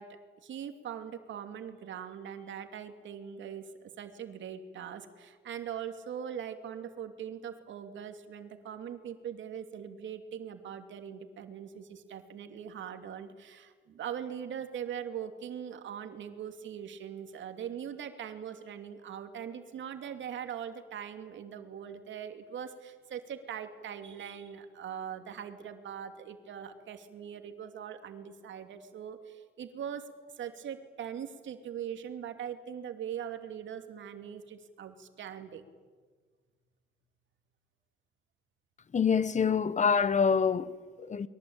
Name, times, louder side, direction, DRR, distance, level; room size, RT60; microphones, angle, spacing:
voice 1, 0.0-30.1 30.4-35.6, right 8 dB, 70° right, 2.7 m, -41 dB
voice 2, 38.9-41.3, left 6 dB, 35° left, 1.1 m, -26 dB
29.5 x 22.5 x 8.9 m
cardioid pair, 90°, 20 cm